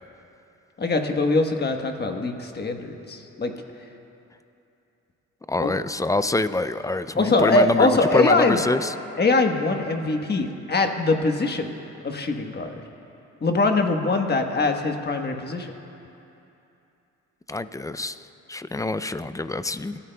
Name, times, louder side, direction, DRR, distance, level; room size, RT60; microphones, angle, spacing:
voice 1, 0.8-3.5 5.6-5.7 7.2-8.6 9.2-11.7 12.0-12.7 13.4-15.7, left 3 dB, 35° left, 4 dB, 1.2 m, -22 dB
voice 2, 5.5-8.9 17.5-20.0, left 2 dB, 10° left, 13 dB, 0.4 m, -26 dB
27.0 x 14.0 x 2.3 m, 2.8 s
cardioid pair, 90°, 30 cm